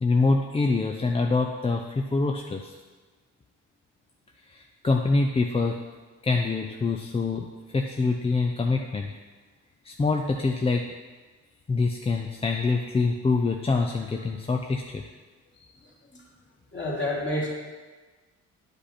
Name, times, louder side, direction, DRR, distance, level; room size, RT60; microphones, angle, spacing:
voice 1, 0.0-2.7 4.5-5.8 6.2-7.5 7.7-9.1 9.8-10.8 11.7-15.0, left 3 dB, 20° left, 2 dB, 0.5 m, -25 dB
voice 2, 15.8-16.2 16.7-17.5, left 1 dB, 40° left, -4 dB, 2.8 m, -30 dB
9.9 x 5.3 x 4.3 m, 1.3 s
cardioid pair, 90°, 30 cm